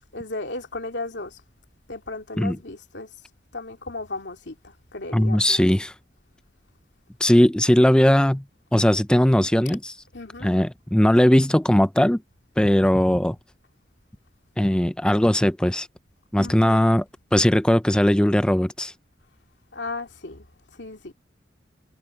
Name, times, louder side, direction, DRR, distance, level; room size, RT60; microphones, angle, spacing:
voice 1, 0.1-1.4 1.9-3.1 3.5-5.6 10.1-10.5 16.4-16.9 19.7-21.1, left 2 dB, 85° left, 2.7 m, -35 dB
voice 2, 5.1-5.9 7.2-8.4 8.7-9.9 10.4-12.2 12.6-13.4 14.6-15.9 16.3-17.0 17.3-18.9, left 1 dB, 5° left, 0.4 m, -19 dB
head